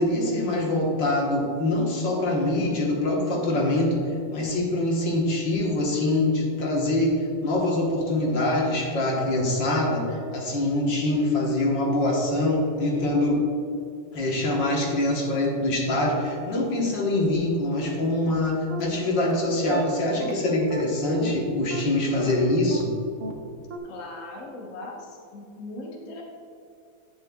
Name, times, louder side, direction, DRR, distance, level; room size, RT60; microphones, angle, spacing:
voice 1, 0.0-13.4 14.1-22.9, left 1 dB, 65° left, -2 dB, 2.0 m, -24 dB
sound 1, 18.3-18.4 18.7-18.8 19.2-19.3 19.7-19.8 20.2-20.3 20.7-20.8 21.2-21.3 21.7-21.8 22.2-22.3 22.7-22.8 23.2-23.3 23.7-23.8, right 3 dB, 55° right, 0.9 m, -35 dB
voice 2, 23.8-26.2, left 2 dB, 45° left, -2 dB, 1.4 m, -39 dB
11.0 x 8.9 x 2.3 m, 2.5 s
omnidirectional pair, 2.2 m